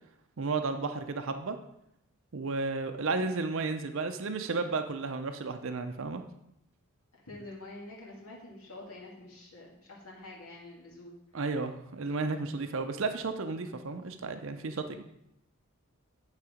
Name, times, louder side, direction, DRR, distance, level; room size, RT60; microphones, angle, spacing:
voice 1, 0.4-1.6 2.3-6.2 11.3-15.0, right 3 dB, 60° right, 7 dB, 0.6 m, -33 dB
voice 2, 7.3-11.1, left 2 dB, 80° left, -4 dB, 2.1 m, -47 dB
9.7 x 4.9 x 5.0 m, 0.78 s
head